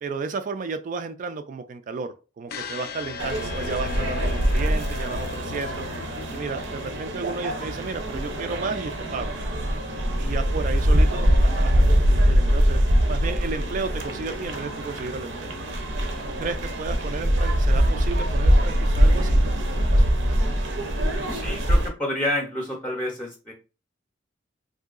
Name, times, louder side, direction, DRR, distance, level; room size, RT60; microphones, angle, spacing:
voice 1, 0.0-5.9 6.3-9.3 10.2-12.8 13.1-15.5 16.4-19.4 19.9-20.1, right 4 dB, 45° right, 0.3 m, -33 dB
sound 1, 2.5-8.6, left 4 dB, 55° left, 0.4 m, -37 dB
sound 2, 3.2-21.9, equal, 80° right, 0.7 m, -23 dB
voice 2, 21.3-23.5, left 1 dB, 10° left, 0.6 m, -29 dB
3.7 x 2.7 x 2.4 m
head